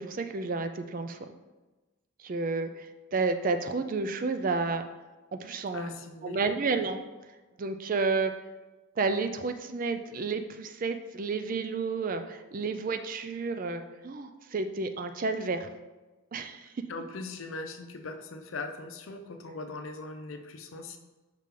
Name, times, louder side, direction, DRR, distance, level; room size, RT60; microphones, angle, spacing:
voice 1, 0.0-1.3 2.2-4.8 5.3-5.9 6.2-7.0 7.6-8.3 9.0-15.7 16.3-16.8, right 4 dB, 40° right, 8 dB, 0.4 m, -31 dB
voice 2, 5.7-6.4 16.9-21.0, left 3 dB, 75° left, 6 dB, 0.6 m, -40 dB
5.8 x 4.8 x 3.7 m, 1.2 s
head